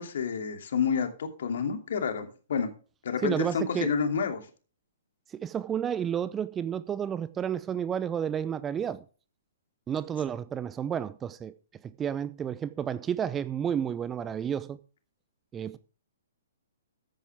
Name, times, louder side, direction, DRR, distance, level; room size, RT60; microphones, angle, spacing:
voice 1, 0.0-2.7 3.0-4.4, left 6 dB, 60° left, 2.8 m, -29 dB
voice 2, 3.2-3.9 5.3-9.0 9.9-11.5 11.8-14.8 15.5-15.8, right 8 dB, 15° right, 0.6 m, -31 dB
14.5 x 10.5 x 3.5 m
figure-of-eight pair, 120°, 0 cm